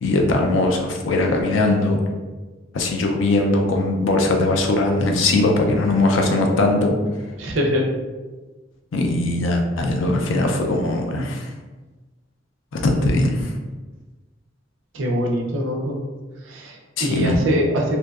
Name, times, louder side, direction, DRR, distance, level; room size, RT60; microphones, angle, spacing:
voice 1, 0.0-2.0 2.7-6.9 8.9-11.5 12.7-13.5 17.0-17.3, left 2 dB, 85° left, 2 dB, 0.4 m, -20 dB
voice 2, 7.4-7.9 14.9-16.0 16.5-18.0, equal, 80° right, 1 dB, 0.5 m, -23 dB
2.6 x 2.1 x 2.3 m, 1.3 s
head